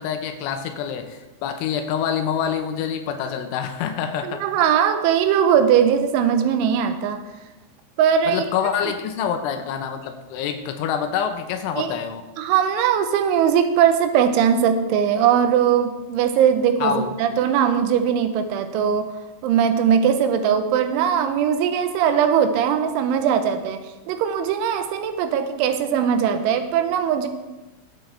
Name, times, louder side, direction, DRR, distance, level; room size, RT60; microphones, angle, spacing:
voice 1, 0.0-4.5 8.3-12.2 16.8-17.1, left 8 dB, 90° left, 6 dB, 3.3 m, -26 dB
voice 2, 4.2-7.2 8.0-8.4 11.8-11.9 12.4-19.1 19.4-23.8 24.1-27.3, right 8 dB, 85° right, 8 dB, 3.3 m, -20 dB
19.0 x 8.3 x 3.4 m, 1.1 s
omnidirectional pair, 5.4 m